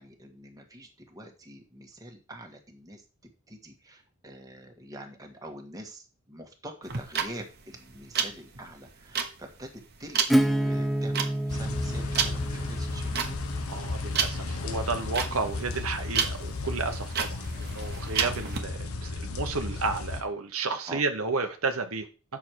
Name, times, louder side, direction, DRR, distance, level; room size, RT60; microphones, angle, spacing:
voice 1, 0.0-3.0 3.5-9.7 10.0-13.4 15.3-15.5 18.2-18.4 20.9-21.0, right 1 dB, 15° right, 2 dB, 1.5 m, -45 dB
sound 1, 6.8-18.6, right 7 dB, 45° right, 1.1 m, -32 dB
Acoustic guitar / Strum, 10.3-15.8, right 1 dB, ahead, 0.8 m, -30 dB
sound 2, 11.5-20.2, left 3 dB, 75° left, 1.1 m, -34 dB
voice 2, 13.7-22.1, right 4 dB, 70° right, 6 dB, 1.0 m, -32 dB
8.5 x 6.2 x 4.6 m, 0.35 s
head